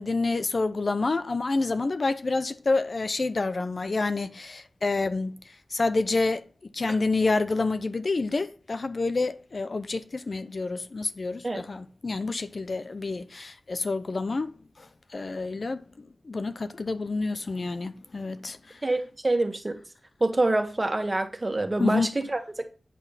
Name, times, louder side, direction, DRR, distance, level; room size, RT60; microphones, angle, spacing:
voice 1, 0.0-5.3 5.7-6.5 6.7-14.9 15.1-18.8 21.8-22.1, left 3 dB, 55° left, 0.7 m, -28 dB
voice 2, 18.8-19.8 20.2-22.7, right 2 dB, 30° right, 1.6 m, -26 dB
8.5 x 5.6 x 4.0 m
wide cardioid pair, 70°, 0 cm